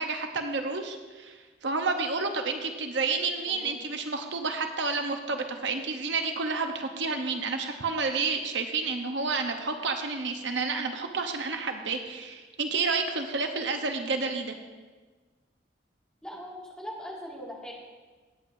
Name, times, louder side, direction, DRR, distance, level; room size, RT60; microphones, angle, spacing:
voice 1, 0.0-14.5, right 4 dB, 80° right, 5 dB, 0.9 m, -30 dB
voice 2, 3.5-3.8 16.2-17.7, equal, 5° left, -5 dB, 2.2 m, -40 dB
18.0 x 8.6 x 2.7 m, 1.3 s
head